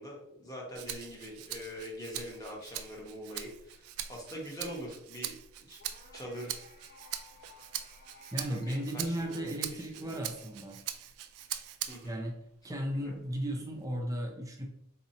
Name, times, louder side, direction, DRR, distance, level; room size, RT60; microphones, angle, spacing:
voice 1, 0.0-5.3 5.6-5.8 6.1-6.6 8.4-10.2 11.9-12.1 13.0-13.1, equal, 15° left, -3 dB, 0.9 m, -43 dB
Rattle (instrument), 0.7-12.2 12.6-13.8, right 11 dB, 75° right, 0.3 m, -42 dB
sound 1, 5.8-10.0, left 3 dB, 45° left, 0.8 m, -58 dB
voice 2, 8.3-10.8 12.0-12.4 12.6-14.7, equal, 15° right, 1 dB, 0.4 m, -35 dB
3.9 x 2.9 x 2.7 m, 0.76 s
head